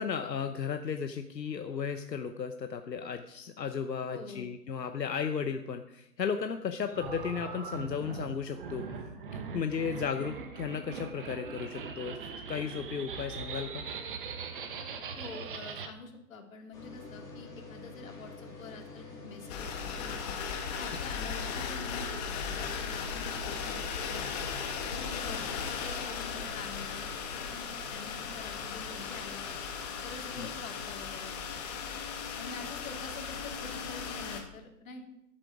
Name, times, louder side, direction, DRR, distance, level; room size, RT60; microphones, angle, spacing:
voice 1, 0.0-8.9 9.5-13.8 21.0-21.1 30.3-30.5, left 6 dB, 80° left, 7 dB, 1.0 m, -35 dB
voice 2, 4.1-4.5 15.2-20.4 20.8-24.4 24.9-29.6 30.0-31.3 32.4-35.0, left 4 dB, 55° left, 3 dB, 2.3 m, -46 dB
sound 1, 6.9-15.9, right 5 dB, 30° right, 1.0 m, -41 dB
tcr soundscape hcfr cléa-marie, 16.7-24.4 25.7-26.1, left 3 dB, 5° left, 2.5 m, -50 dB
sound 2, 19.5-34.4, left 6 dB, 25° left, 1.4 m, -37 dB
13.0 x 7.7 x 5.0 m, 0.83 s
figure-of-eight pair, 140°, 49 cm